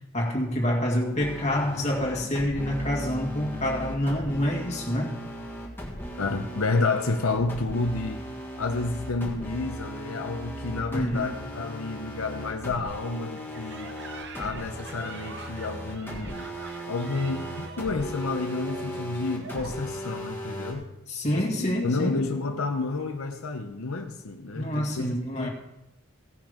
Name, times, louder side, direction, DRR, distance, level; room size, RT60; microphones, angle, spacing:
voice 1, 0.1-5.2 10.9-11.3 21.1-22.2 24.6-25.5, equal, 30° left, -2 dB, 2.1 m, -27 dB
sound 1, 1.2-20.7, equal, 10° left, 1.7 m, -37 dB
voice 2, 6.2-8.3 8.6-13.9 14.3-16.5 16.9-20.9 21.3-25.5, left 3 dB, 80° left, 5 dB, 0.8 m, -30 dB
sound 2, 13.3-19.7, right 4 dB, 50° right, 0.9 m, -45 dB
16.5 x 6.1 x 5.1 m, 0.90 s
head